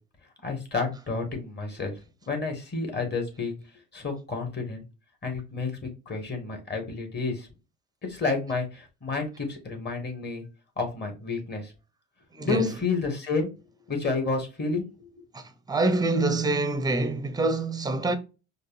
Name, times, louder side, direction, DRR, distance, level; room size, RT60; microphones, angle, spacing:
voice 1, 0.4-2.0 2.3-3.6 3.9-4.8 5.2-7.5 8.0-10.4 10.8-11.7 12.4-13.5 13.9-15.2, left 4 dB, 30° left, 1.9 m, -30 dB
voice 2, 12.3-12.7 15.3-18.2, right 2 dB, 10° right, 0.7 m, -26 dB
5.2 x 2.4 x 2.6 m
supercardioid pair, 90°, 35 cm